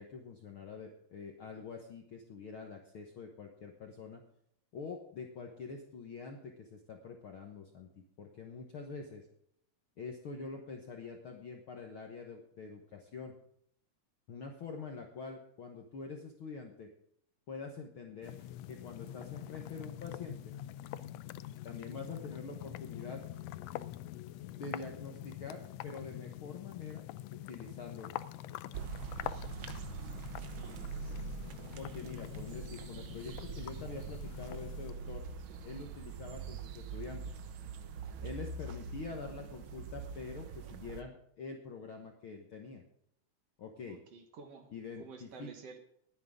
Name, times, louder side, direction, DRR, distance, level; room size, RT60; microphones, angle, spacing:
voice 1, 0.0-4.2 4.7-7.9 8.2-9.3 10.0-13.3 14.3-16.9 17.5-20.5 21.6-23.2 24.6-27.0 27.3-28.1 31.8-35.2 35.6-37.4 38.2-42.8 43.6-44.0 44.7-45.5, left 4 dB, 55° left, 2 dB, 1.7 m, -45 dB
sound 1, 18.2-34.9, left 13 dB, 90° left, 1.5 m, -45 dB
sound 2, 28.7-41.0, right 5 dB, 90° right, 1.1 m, -43 dB
voice 2, 30.6-30.9 43.9-44.7 45.0-45.8, right 5 dB, 55° right, 5 dB, 2.3 m, -51 dB
20.5 x 9.6 x 3.8 m, 0.70 s
omnidirectional pair, 3.7 m